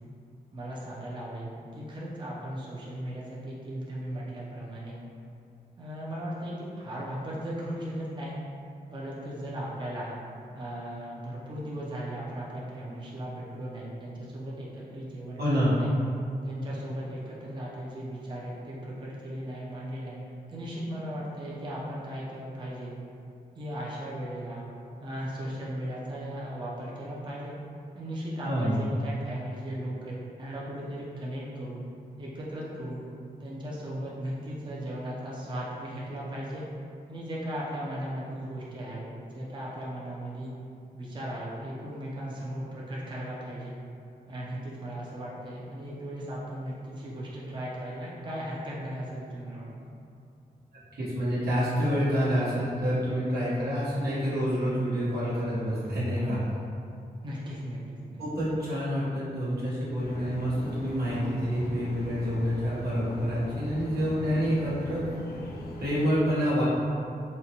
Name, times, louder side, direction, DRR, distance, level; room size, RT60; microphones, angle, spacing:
voice 1, 0.5-5.0 5.8-8.4 8.9-10.1 10.5-15.9 16.4-20.2 20.5-22.9 23.6-24.7 25.0-27.5 27.9-31.8 32.2-33.0 33.4-36.6 37.1-39.1 39.3-40.5 40.9-43.8 44.3-49.9 56.1-56.6 57.2-58.2 64.8-65.1, right 1 dB, 30° right, -6 dB, 0.6 m, -37 dB
voice 2, 15.4-15.7 28.4-28.8 50.9-56.4 58.2-65.0 65.8-66.6, equal, 85° right, -9 dB, 1.1 m, -27 dB
sound 1, 60.0-66.1, left 1 dB, 80° left, 0.4 m, -40 dB
4.1 x 2.2 x 2.9 m, 2.6 s
cardioid pair, 85°, 16 cm